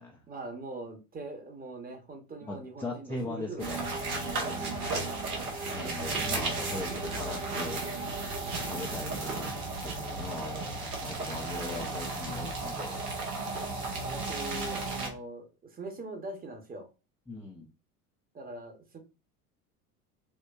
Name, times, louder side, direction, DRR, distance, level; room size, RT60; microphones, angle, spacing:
voice 1, 0.3-4.0 8.4-8.7 11.2-11.9 14.0-16.9 18.3-19.0, right 2 dB, 20° right, 0.8 m, -42 dB
voice 2, 2.4-3.8 4.1-4.8 5.7-7.8 8.7-9.5 9.8-13.0 17.3-17.7, left 2 dB, 5° left, 0.3 m, -40 dB
sound 1, 3.6-15.1, right 3 dB, 80° right, 1.0 m, -34 dB
4.5 x 2.1 x 2.3 m
figure-of-eight pair, 70°, 45 cm